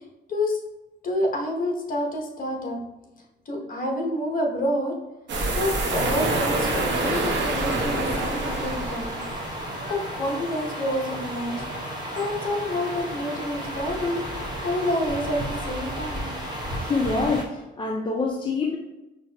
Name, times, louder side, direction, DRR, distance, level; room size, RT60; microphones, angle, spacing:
voice 1, 0.3-0.6 1.0-2.8 3.5-4.9 5.5-9.2 9.9-11.6 12.1-14.2 14.6-16.3, left 1 dB, 45° left, 0 dB, 0.9 m, -28 dB
sound 1, 5.3-9.8, right 2 dB, 65° right, 0.9 m, -26 dB
sound 2, 8.0-17.4, equal, 20° right, 0.9 m, -33 dB
voice 2, 16.8-18.8, left 3 dB, 25° left, 0 dB, 0.4 m, -26 dB
5.5 x 2.7 x 2.2 m, 1.0 s
cardioid pair, 90°, 20 cm